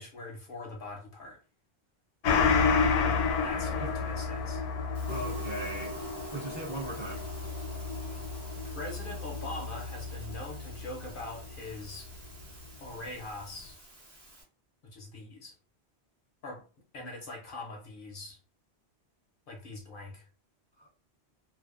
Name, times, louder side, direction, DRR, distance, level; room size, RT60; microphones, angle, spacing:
voice 1, 0.0-1.4 3.4-4.7 8.3-12.1 12.8-13.8 14.8-15.5 16.4-16.6 16.9-18.4 19.5-20.3, left 2 dB, 60° left, 0.7 m, -42 dB
Gong, 2.2-11.2 11.5-11.6, left 5 dB, 85° left, 0.9 m, -30 dB
Musical instrument, 4.9-14.4, right 3 dB, 50° right, 1.1 m, -47 dB
voice 2, 5.1-6.0 6.3-7.2, right 1 dB, 30° right, 0.6 m, -38 dB
2.5 x 2.1 x 2.4 m
omnidirectional pair, 1.1 m